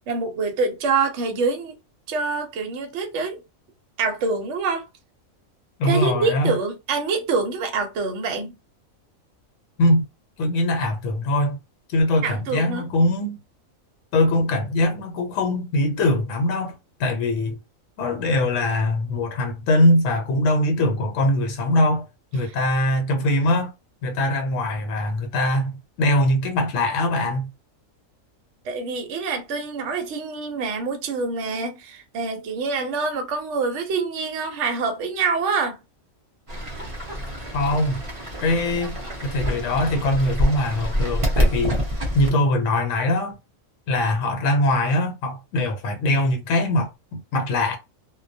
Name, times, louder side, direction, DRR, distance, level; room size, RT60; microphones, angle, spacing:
voice 1, 0.1-1.7 2.1-3.4 4.0-4.9 5.8-8.5 12.2-12.9 28.6-35.8, right 4 dB, 65° right, 0.9 m, -25 dB
voice 2, 5.8-6.5 9.8-10.0 10.4-11.6 11.9-13.4 14.1-17.6 18.0-22.0 22.3-23.7 24.0-27.5 37.5-38.0 38.4-38.9 39.2-41.7 42.1-43.4 43.9-47.8, left 1 dB, 70° left, 1.0 m, -22 dB
Fowl / Bird, 36.5-42.3, equal, 35° right, 0.5 m, -26 dB
2.3 x 2.2 x 2.6 m
omnidirectional pair, 1.4 m